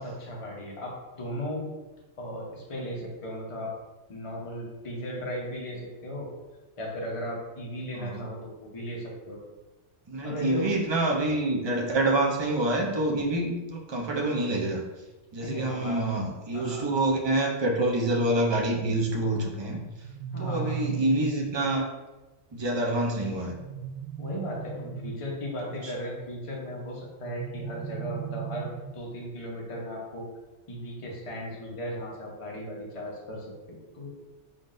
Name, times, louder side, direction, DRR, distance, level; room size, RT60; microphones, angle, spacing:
voice 1, 0.0-1.7 2.2-3.7 4.1-6.3 6.8-9.4 10.2-10.7 15.4-16.0 16.5-16.9 20.3-20.8 24.2-30.3 30.7-34.2, equal, 30° left, -3 dB, 0.8 m, -36 dB
voice 2, 7.9-8.3 10.1-14.8 15.3-19.8 20.4-21.9 22.5-23.6 25.8-25.9, right 1 dB, 45° right, 0 dB, 0.3 m, -27 dB
sound 1, 19.8-21.8 23.5-25.4 27.2-29.1, right 9 dB, 80° right, 0.9 m, -37 dB
4.0 x 3.7 x 2.5 m, 1.1 s
omnidirectional pair, 1.2 m